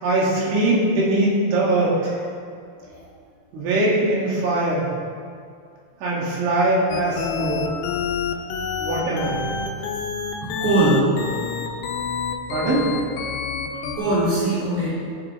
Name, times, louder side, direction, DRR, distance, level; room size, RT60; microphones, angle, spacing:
voice 1, 0.0-2.1 3.5-4.9 6.0-7.6 8.8-9.4 12.5-12.9, right 2 dB, 85° right, -5 dB, 4.6 m, -21 dB
sound 1, 6.9-14.0, left 6 dB, 75° left, 2.5 m, -27 dB
voice 2, 10.4-11.0 13.9-14.9, right 2 dB, 60° right, -14 dB, 5.1 m, -21 dB
15.0 x 7.6 x 3.5 m, 2.2 s
omnidirectional pair, 5.3 m